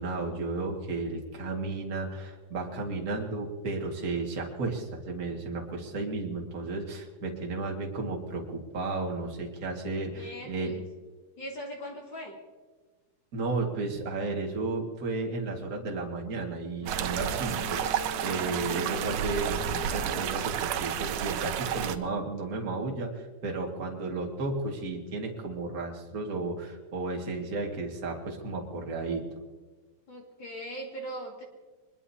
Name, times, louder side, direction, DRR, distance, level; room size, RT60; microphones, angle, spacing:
voice 1, 0.0-10.7 13.3-29.2, right 3 dB, 35° right, 0 dB, 2.1 m, -33 dB
voice 2, 10.1-10.8 11.4-12.3 30.1-31.5, equal, 45° left, -1 dB, 2.7 m, -40 dB
Wind instrument woodwind instrument, 16.8-20.7, left 3 dB, 15° right, 0.9 m, -44 dB
sound 1, 16.9-22.0, right 9 dB, 85° right, 2.2 m, -31 dB
24.5 x 20.5 x 2.8 m, 1.3 s
omnidirectional pair, 3.3 m